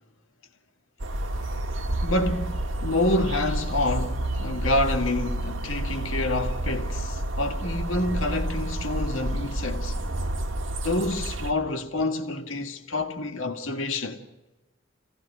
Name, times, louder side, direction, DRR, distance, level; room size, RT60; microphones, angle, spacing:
sound 1, 1.0-11.5, right 1 dB, 80° right, 1.6 m, -29 dB
voice 1, 2.0-10.0 10.8-14.2, left 2 dB, 85° left, 1.9 m, -28 dB
26.5 x 16.5 x 6.1 m
head